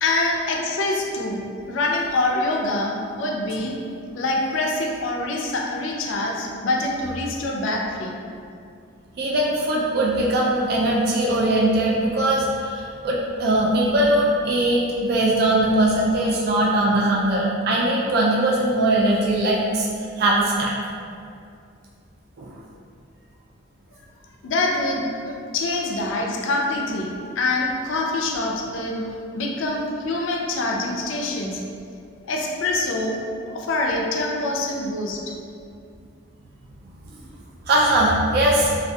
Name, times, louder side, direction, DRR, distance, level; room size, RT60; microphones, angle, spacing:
voice 1, 0.0-3.7 4.1-8.2 24.4-29.0 29.3-31.6 32.2-33.2 33.5-35.3, left 2 dB, 70° left, 0 dB, 0.4 m, -25 dB
voice 2, 9.2-19.9 20.2-20.7 22.4-22.5 37.7-38.8, right 1 dB, 50° right, -4 dB, 0.3 m, -20 dB
2.6 x 2.3 x 2.2 m, 2.4 s
head